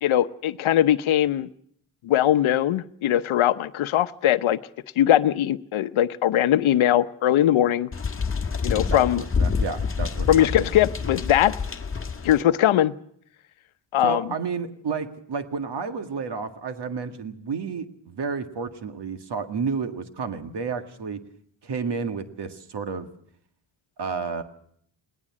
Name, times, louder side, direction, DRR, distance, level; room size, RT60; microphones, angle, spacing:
voice 1, 0.0-1.5 2.0-4.6 5.0-7.9 8.6-9.2 10.3-11.5 12.2-12.9 13.9-14.2, left 12 dB, 75° left, 13 dB, 0.9 m, -20 dB
sound 1, 7.9-12.4, left 5 dB, 25° left, 1.8 m, -27 dB
voice 2, 8.8-10.7 14.0-21.2 21.6-23.1 24.0-24.4, right 5 dB, 55° right, 8 dB, 2.0 m, -31 dB
20.5 x 18.5 x 7.4 m, 0.65 s
cardioid pair, 80°, 49 cm